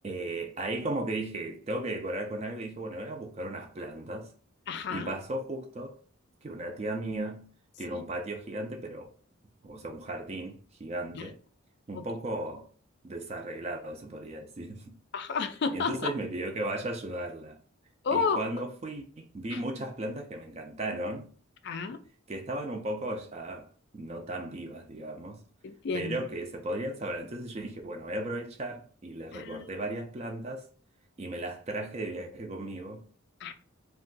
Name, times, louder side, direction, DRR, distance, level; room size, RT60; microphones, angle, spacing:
voice 1, 0.0-4.3 4.9-6.0 6.4-7.5 7.8-9.1 9.6-11.4 11.9-12.7 13.0-14.9 15.7-17.6 18.1-21.3 22.3-23.7 23.9-25.4 25.9-30.7 31.2-33.0, right 1 dB, 30° right, 0.4 m, -36 dB
voice 2, 4.7-5.1 7.9-8.0 11.1-11.3 11.9-12.0 15.1-16.1 18.0-18.4 19.5-19.6 21.6-22.0 25.6-26.2 29.3-29.7 33.4-33.5, left 5 dB, 55° left, 0.3 m, -31 dB
2.6 x 2.2 x 3.8 m
head